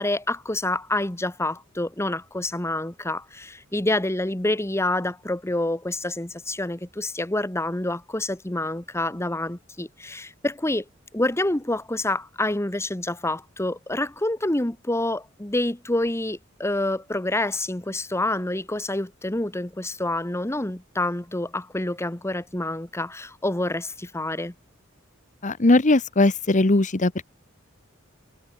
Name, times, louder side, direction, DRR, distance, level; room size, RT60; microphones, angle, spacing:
voice 1, 0.0-10.8 11.1-24.5, left 1 dB, 15° left, 1.3 m, -27 dB
voice 2, 25.4-27.2, left 2 dB, 40° left, 1.1 m, -19 dB
head